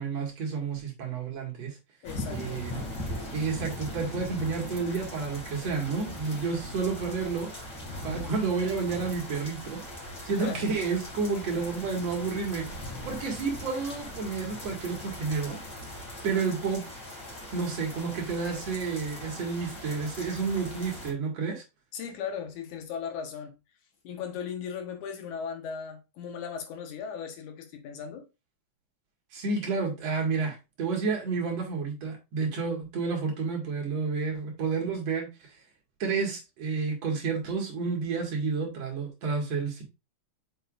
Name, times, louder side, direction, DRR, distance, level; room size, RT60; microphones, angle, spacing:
voice 1, 0.0-1.8 2.3-2.8 3.3-7.5 8.0-9.8 10.2-12.6 13.0-15.6 16.2-16.8 17.5-21.6 29.3-35.3 36.0-39.8, right 4 dB, 60° right, 2.9 m, -30 dB
voice 2, 2.0-2.6 10.4-10.6 21.9-23.6 24.0-28.3, left 7 dB, 75° left, 2.6 m, -37 dB
sound 1, 2.0-21.1, left 1 dB, 25° left, 3.8 m, -40 dB
6.9 x 6.2 x 2.5 m
omnidirectional pair, 3.6 m